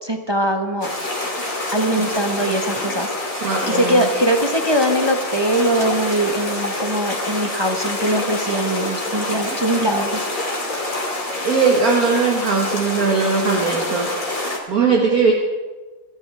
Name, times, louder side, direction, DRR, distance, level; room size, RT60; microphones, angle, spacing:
voice 1, 0.0-0.9 1.7-3.1 3.7-10.3, right 1 dB, 20° right, 3 dB, 0.7 m, -21 dB
sound 1, 0.8-14.6, left 2 dB, 40° left, 3.0 m, -26 dB
voice 2, 3.4-4.1 11.4-14.1 14.7-15.3, right 5 dB, 45° right, 0 dB, 1.8 m, -19 dB
27.5 x 13.5 x 3.4 m, 1.3 s
omnidirectional pair, 2.3 m